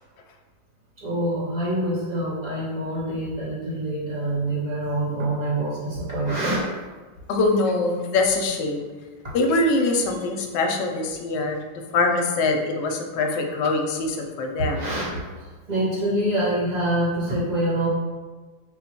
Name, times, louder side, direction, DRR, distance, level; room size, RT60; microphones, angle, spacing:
voice 1, 1.0-6.7 14.6-17.9, right 1 dB, 30° right, -8 dB, 0.8 m, -26 dB
voice 2, 7.3-8.9 9.3-11.6 11.9-14.9, left 2 dB, 75° left, 3 dB, 1.1 m, -23 dB
3.9 x 2.1 x 4.2 m, 1.3 s
omnidirectional pair, 2.0 m